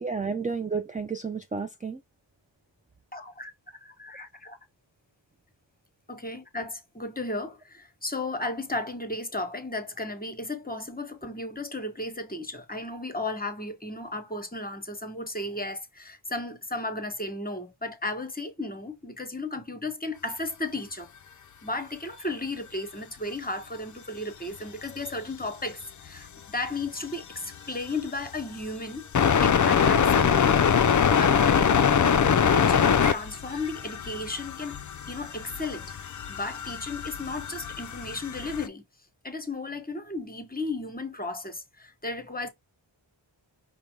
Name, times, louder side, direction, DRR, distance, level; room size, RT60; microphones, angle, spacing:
voice 1, 0.0-2.0, right 5 dB, 15° right, 0.4 m, -31 dB
voice 2, 3.1-3.5 3.8-4.6 6.1-21.1 21.6-29.0 29.4-30.6 31.2-34.8 35.1-38.8 39.2-42.5, left 2 dB, 20° left, 1.0 m, -34 dB
sound 1, 25.1-25.2 28.3-28.4 29.1-38.7, left 7 dB, 40° left, 0.4 m, -23 dB
5.2 x 2.2 x 4.5 m
wide cardioid pair, 70°, 47 cm